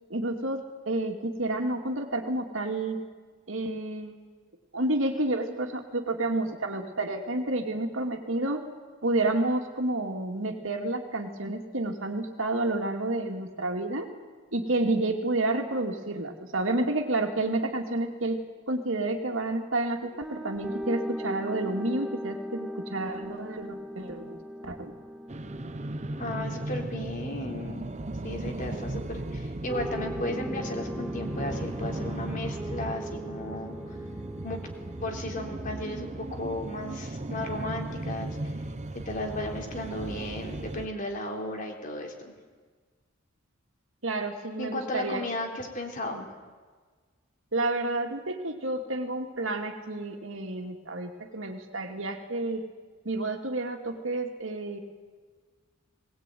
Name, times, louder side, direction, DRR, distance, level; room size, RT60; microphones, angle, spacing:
voice 1, 0.1-3.0 3.5-4.2 4.7-8.6 9.0-14.1 14.5-24.9 44.0-45.2 46.1-46.2 47.5-52.6 53.0-54.8, right 2 dB, 75° right, 3 dB, 2.6 m, -30 dB
sound 1, 20.2-28.3 29.7-36.3, equal, ahead, 1.6 m, -39 dB
sound 2, 25.3-40.9, right 1 dB, 35° right, 0.9 m, -36 dB
voice 2, 26.2-27.9 28.2-33.9 34.4-34.6 35.0-38.4 39.1-42.3 44.6-46.3, left 1 dB, 40° left, 1 dB, 3.6 m, -35 dB
21.0 x 19.0 x 9.3 m, 1.5 s
head